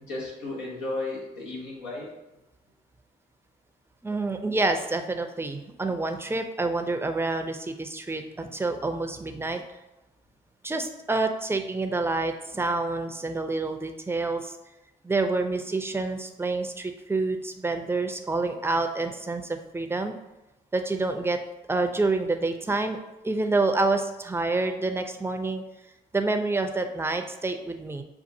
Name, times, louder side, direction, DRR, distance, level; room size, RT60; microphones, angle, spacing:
voice 1, 0.1-2.1, left 2 dB, 90° left, -3 dB, 1.1 m, -34 dB
voice 2, 4.0-9.6 10.6-14.6 15.0-20.1 20.7-21.4 21.7-23.0 23.2-25.6 26.1-28.0, right 3 dB, 10° right, 6 dB, 0.5 m, -28 dB
6.4 x 2.4 x 2.7 m, 0.97 s
hypercardioid pair, 50°, 19 cm